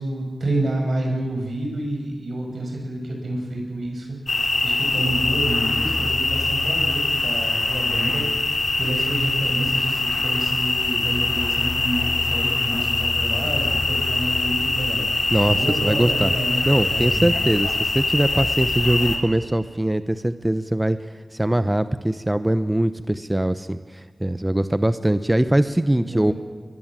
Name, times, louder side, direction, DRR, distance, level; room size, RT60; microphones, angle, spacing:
voice 1, 0.0-16.6 16.9-17.2 25.9-26.3, right 1 dB, 85° right, 2 dB, 6.2 m, -28 dB
sound 1, 4.3-19.2, left 3 dB, 70° left, 3.1 m, -23 dB
voice 2, 15.3-16.3 16.7-21.0 21.3-26.3, right 1 dB, 20° right, 11 dB, 0.9 m, -22 dB
22.0 x 22.0 x 7.5 m, 1.5 s
wide cardioid pair, 55°, 0 cm